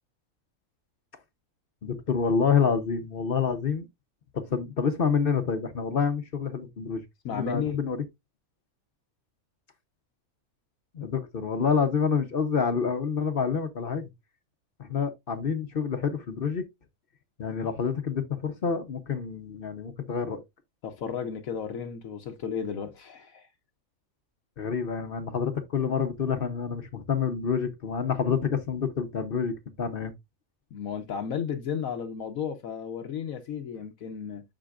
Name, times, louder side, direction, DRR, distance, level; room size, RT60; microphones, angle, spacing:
voice 1, 1.8-3.9 4.3-7.0 7.3-8.0 10.9-14.1 14.8-16.6 17.4-20.4 24.6-30.1, left 6 dB, 45° left, 0.9 m, -28 dB
voice 2, 7.2-7.8 20.8-23.5 30.7-34.4, left 7 dB, 70° left, 1.2 m, -33 dB
7.6 x 6.1 x 2.4 m
omnidirectional pair, 1.5 m